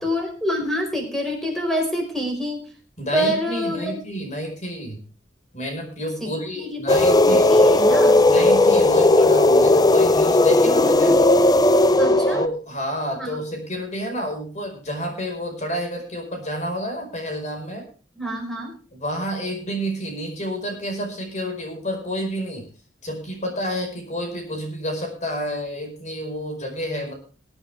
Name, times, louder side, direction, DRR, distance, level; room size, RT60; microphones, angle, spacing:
voice 1, 0.0-2.6 3.1-3.9 6.2-6.3 6.6-8.2 12.0-12.4 13.2-13.3 18.1-18.7, equal, ahead, 2 dB, 4.8 m, -26 dB
voice 2, 3.0-5.0 5.5-7.5 8.3-11.2 12.3-17.8 18.9-22.7 23.0-27.1, equal, 40° left, 3 dB, 5.0 m, -29 dB
sound 1, 6.9-12.5, left 2 dB, 20° left, 0.5 m, -16 dB
21.5 x 8.9 x 3.5 m, 0.38 s
head